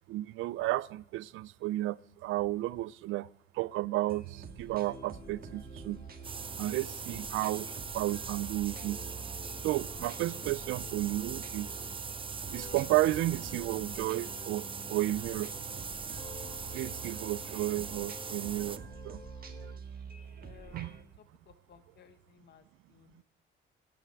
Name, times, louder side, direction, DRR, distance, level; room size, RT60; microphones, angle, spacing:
voice 1, 0.1-3.3 3.5-6.0 6.6-7.7 7.9-9.0 9.6-11.7 12.5-15.5 16.7-19.2 20.7-20.9, right 16 dB, 85° right, 0.4 m, -32 dB
sound 1, 4.1-21.0, right 6 dB, 50° right, 1.6 m, -48 dB
sound 2, 4.9-12.1 12.5-15.9 16.2-19.8, left 6 dB, 30° left, 0.5 m, -53 dB
sound 3, 6.2-18.8, right 5 dB, 25° right, 0.6 m, -41 dB
voice 2, 17.6-18.1 20.4-23.2, left 8 dB, 60° left, 1.5 m, -59 dB
11.0 x 9.4 x 7.3 m
cardioid pair, 90°, 20 cm